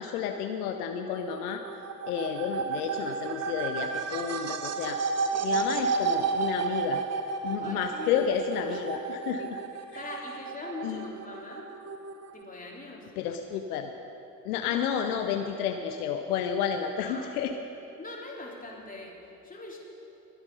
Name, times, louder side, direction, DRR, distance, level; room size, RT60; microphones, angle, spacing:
voice 1, 0.0-1.6 2.1-5.0 5.4-7.0 7.4-9.6 9.9-10.0 10.8-11.1 13.2-13.9 14.4-17.5, left 8 dB, 70° left, 6 dB, 0.8 m, -31 dB
sound 1, 1.1-12.4, right 5 dB, 35° right, 1.0 m, -32 dB
voice 2, 5.3-6.2 7.6-8.8 9.9-11.7 12.3-13.1 14.6-15.0 17.0-17.3 18.0-19.2 19.4-19.8, left 2 dB, 15° left, -3 dB, 3.3 m, -42 dB
21.5 x 8.1 x 5.3 m, 3.0 s
figure-of-eight pair, 55°, 46 cm